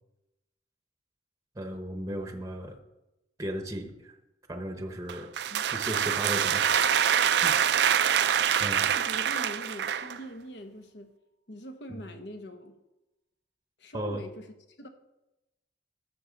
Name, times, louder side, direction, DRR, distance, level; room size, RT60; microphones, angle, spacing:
voice 1, 1.5-2.8 3.4-4.1 4.5-5.3 5.7-7.0 7.4-7.6 8.0-8.9 11.9-12.0 13.9-14.2, right 1 dB, 15° right, 5 dB, 0.8 m, -36 dB
sound 1, 5.1-10.2, right 9 dB, 65° right, 0.4 m, -25 dB
Keyboard (musical), 6.6-9.1, right 1 dB, 85° right, 0.8 m, -40 dB
voice 2, 8.7-11.1 11.5-12.8 13.8-14.9, equal, 70° left, 7 dB, 1.1 m, -43 dB
12.0 x 7.0 x 3.9 m, 0.95 s
head